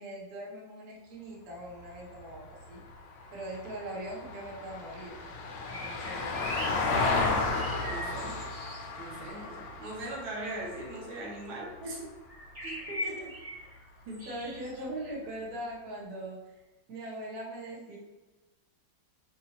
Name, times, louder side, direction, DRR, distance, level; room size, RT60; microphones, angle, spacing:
voice 1, 0.0-2.8 3.3-5.2 5.6-7.0 8.2-8.4 11.8-12.1 12.7-13.8 14.2-16.6 16.9-18.0, right 1 dB, 55° right, -4 dB, 1.4 m, -41 dB
Vehicle, 1.6-12.1 14.4-14.5, left 3 dB, 75° left, 1.2 m, -34 dB
sound 1, 5.6-8.8 12.3-13.6 14.1-14.8, equal, 30° right, 1.4 m, -40 dB
voice 2, 7.8-8.3 9.0-12.0 12.6-12.8 14.1-14.3, right 2 dB, 85° right, -3 dB, 1.7 m, -40 dB
5.3 x 2.7 x 2.8 m, 1.1 s
omnidirectional pair, 2.1 m